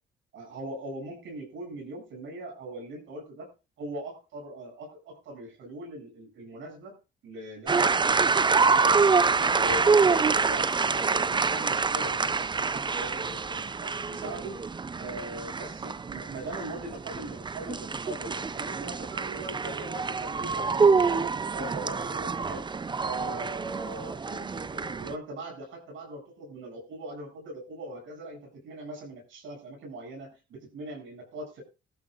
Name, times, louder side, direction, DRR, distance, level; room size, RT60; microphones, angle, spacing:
voice 1, 0.3-3.5 3.8-7.0 7.2-9.1 9.5-14.6 15.0-22.7 23.0-31.6, right 1 dB, 75° right, 2 dB, 7.8 m, -41 dB
sound 1, 7.7-25.1, right 4 dB, 25° right, 0.6 m, -26 dB
18.0 x 13.5 x 2.6 m, 0.31 s
cardioid pair, 90°, 20 cm